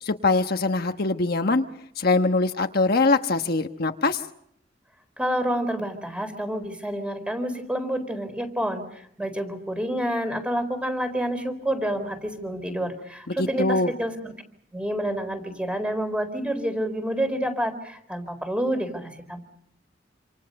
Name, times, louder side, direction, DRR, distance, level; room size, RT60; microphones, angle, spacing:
voice 1, 0.0-1.7 2.0-4.2 13.3-13.9, left 3 dB, 55° left, 6 dB, 1.2 m, -23 dB
voice 2, 5.2-8.8 9.2-14.3 14.7-19.4, equal, 5° right, 8 dB, 4.1 m, -28 dB
28.0 x 27.5 x 5.4 m, 0.72 s
head